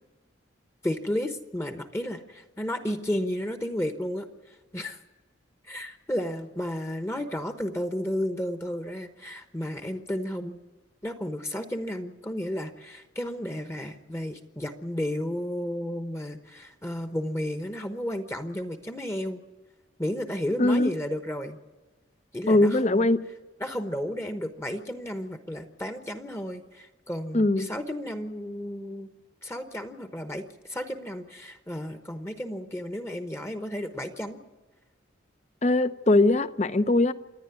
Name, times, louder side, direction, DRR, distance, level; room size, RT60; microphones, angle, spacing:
voice 1, 0.8-5.0 5.6-10.6 11.0-19.4 20.0-21.6 22.3-23.1 23.6-29.1 29.4-34.4, equal, 15° left, 1.0 m, -33 dB
voice 2, 20.6-20.9 22.5-23.2 27.3-27.7 35.6-37.1, left 2 dB, 35° left, 0.7 m, -21 dB
27.0 x 10.0 x 9.8 m
head